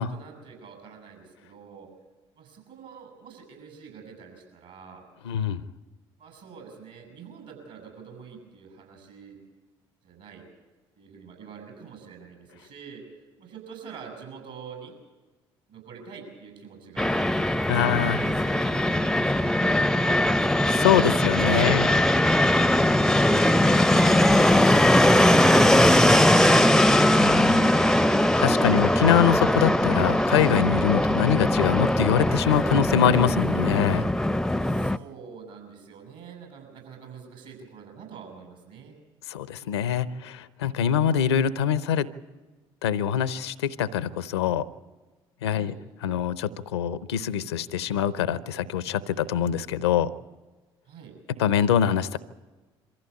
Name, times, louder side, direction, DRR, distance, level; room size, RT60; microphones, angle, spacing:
voice 1, 0.0-1.9 2.4-5.0 6.2-9.4 10.0-10.5 11.0-13.0 13.4-15.0 15.7-17.3 17.7-20.4 21.1-22.8 34.6-39.0 45.5-45.8 50.9-51.2, right 6 dB, 65° right, 3 dB, 7.4 m, -45 dB
voice 2, 5.2-5.6 17.7-18.2 20.8-21.9 27.1-34.1 39.3-42.1 42.8-44.6 45.4-45.7 46.0-50.1 51.4-52.2, left 9 dB, 85° left, 17 dB, 0.6 m, -24 dB
Fixed-wing aircraft airplane, 17.0-35.0, left 1 dB, 5° left, 0.6 m, -20 dB
23.5 x 15.0 x 8.5 m, 1.3 s
hypercardioid pair, 55°, 13 cm